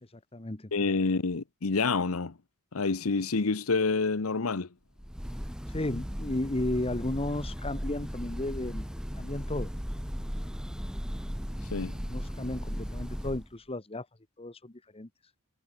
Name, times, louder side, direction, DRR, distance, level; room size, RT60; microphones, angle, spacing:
voice 1, 0.0-0.7 5.7-8.9 9.2-9.7 11.9-14.1 14.4-15.1, left 1 dB, 25° left, 1.2 m, -34 dB
voice 2, 0.7-2.3 2.7-4.7 11.7-11.9, left 4 dB, 85° left, 0.9 m, -28 dB
Breathing / Bird, 5.0-13.5, equal, 5° right, 3.2 m, -36 dB
head